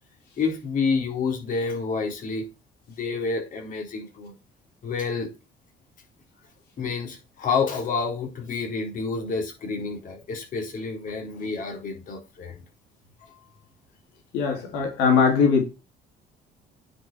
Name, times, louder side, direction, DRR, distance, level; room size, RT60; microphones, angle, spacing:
voice 1, 0.4-2.5 3.0-4.3 4.8-5.3 6.8-12.6 13.3-13.4, left 4 dB, 50° left, 4.0 m, -29 dB
voice 2, 14.3-15.6, left 5 dB, 90° left, 2.9 m, -20 dB
9.6 x 5.6 x 4.6 m
cardioid pair, 110°, 17 cm